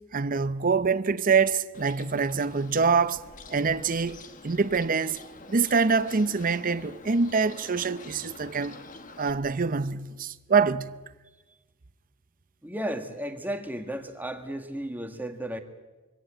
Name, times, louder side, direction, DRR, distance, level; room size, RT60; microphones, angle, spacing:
voice 1, 0.1-3.2 3.5-4.2 4.4-5.2 5.5-8.8 9.2-10.9, right 5 dB, 40° right, 0.6 m, -25 dB
Bird, 1.7-9.3, left 3 dB, 40° left, 1.4 m, -47 dB
voice 2, 12.6-15.6, right 1 dB, 10° right, 1.7 m, -34 dB
23.5 x 17.0 x 9.0 m
head